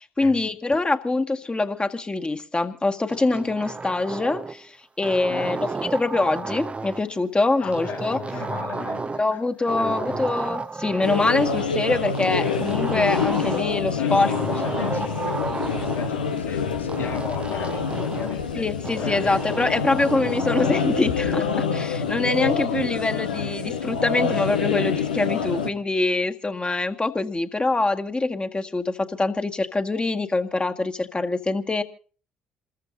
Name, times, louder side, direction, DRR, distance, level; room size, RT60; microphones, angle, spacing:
voice 1, 0.0-4.7 5.0-8.2 9.2-14.3 18.5-31.8, left 2 dB, 20° left, 1.8 m, -24 dB
sound 1, 3.1-4.6 5.0-7.1 7.7-9.4 9.7-11.7 12.1-13.7 14.1-16.1 16.9-18.4 18.8-20.9, right 3 dB, 25° right, 0.8 m, -32 dB
voice 2, 5.3-5.7 7.6-9.4 9.8-10.2 13.8-18.7 18.9-19.6, left 6 dB, 70° left, 6.4 m, -36 dB
sound 2, 11.0-25.7, left 6 dB, 90° left, 1.1 m, -26 dB
28.0 x 14.5 x 2.7 m
hypercardioid pair, 50°, 5 cm